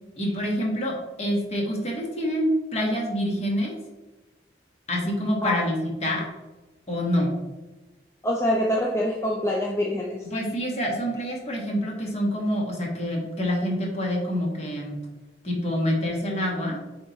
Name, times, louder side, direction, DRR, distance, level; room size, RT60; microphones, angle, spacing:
voice 1, 0.2-3.8 4.9-6.3 6.9-7.3 10.3-15.0 15.4-16.8, equal, 35° left, -2 dB, 1.6 m, -26 dB
voice 2, 8.2-10.3, left 1 dB, 15° left, -2 dB, 0.5 m, -25 dB
8.5 x 3.6 x 3.1 m, 1.2 s
head